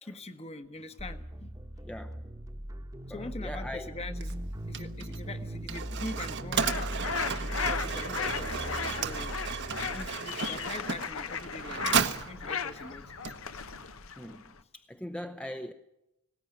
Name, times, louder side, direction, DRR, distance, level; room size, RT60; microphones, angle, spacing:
voice 1, 0.0-1.9 3.1-4.4 4.7-6.7 7.7-9.4 9.9-13.1, left 2 dB, 30° left, 1.2 m, -43 dB
sound 1, 1.0-10.1, equal, 15° right, 1.2 m, -39 dB
voice 2, 1.8-2.2 3.1-3.9 14.2-15.7, left 1 dB, 5° left, 0.7 m, -41 dB
Mechanisms, 4.1-13.8, right 6 dB, 55° right, 1.2 m, -34 dB
sound 2, 6.5-14.6, left 6 dB, 70° left, 1.1 m, -36 dB
20.0 x 17.5 x 9.9 m
head